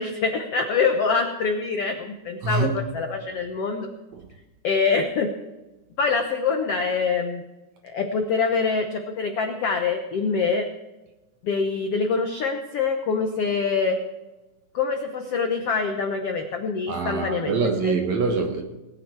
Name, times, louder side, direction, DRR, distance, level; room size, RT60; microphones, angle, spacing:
voice 1, 0.0-3.9 4.6-5.3 6.0-7.4 7.8-10.7 11.4-14.0 14.7-18.0, left 5 dB, 80° left, 1.3 m, -25 dB
voice 2, 2.4-2.8 16.9-18.6, right 4 dB, 60° right, 2.1 m, -24 dB
20.0 x 9.5 x 4.6 m
omnidirectional pair, 4.3 m